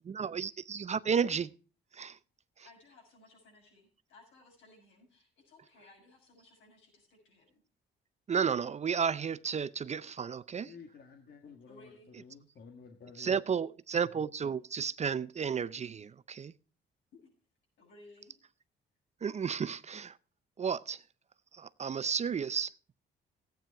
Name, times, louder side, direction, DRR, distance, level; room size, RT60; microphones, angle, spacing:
voice 1, 0.0-1.5 1.9-2.2 8.3-10.7 13.2-16.5 19.2-20.1 20.6-21.0 21.6-22.7, right 6 dB, 35° right, 0.5 m, -32 dB
voice 2, 2.6-7.6 11.7-12.1 17.1-17.3 17.8-18.4, left 2 dB, 80° left, 6.8 m, -59 dB
voice 3, 10.6-13.3, left 5 dB, 55° left, 1.7 m, -52 dB
14.0 x 9.3 x 4.6 m
cardioid pair, 90°, 20 cm